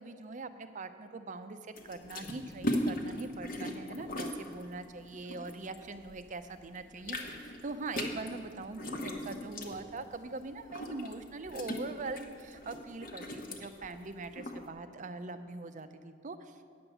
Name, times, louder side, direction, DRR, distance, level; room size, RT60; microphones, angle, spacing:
voice 1, 0.0-16.6, right 3 dB, 40° right, 10 dB, 0.5 m, -42 dB
sound 1, 1.8-6.3 6.6-14.6, left 1 dB, 45° left, 1.0 m, -39 dB
9.4 x 7.1 x 6.9 m, 2.4 s
head